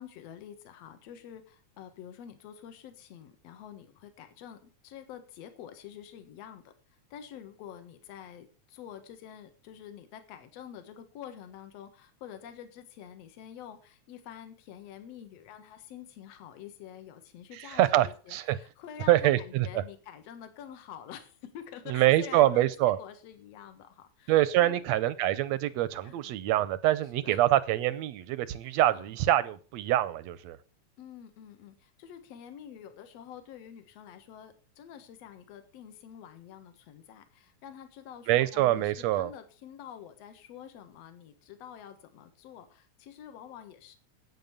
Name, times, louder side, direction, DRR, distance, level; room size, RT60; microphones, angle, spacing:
voice 1, 0.0-6.7 7.1-24.8 26.0-26.4 27.2-27.4 28.6-29.2 31.0-44.0, left 9 dB, 60° left, 2.4 m, -47 dB
voice 2, 17.7-18.6 19.1-19.7 21.9-23.0 24.3-30.6 38.3-39.3, right 14 dB, 75° right, 1.7 m, -25 dB
10.5 x 8.6 x 7.0 m
omnidirectional pair, 3.6 m